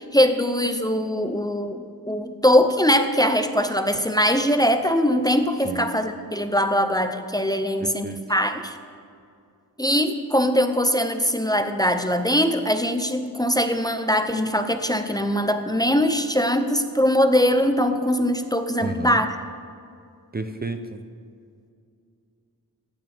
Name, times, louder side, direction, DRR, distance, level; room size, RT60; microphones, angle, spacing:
voice 1, 0.0-8.8 9.8-19.3, equal, 10° left, 7 dB, 0.6 m, -22 dB
voice 2, 7.8-8.2 18.8-19.2 20.3-21.0, right 3 dB, 25° right, 8 dB, 0.6 m, -32 dB
15.0 x 10.5 x 3.5 m, 2.4 s
wide cardioid pair, 85°, 37 cm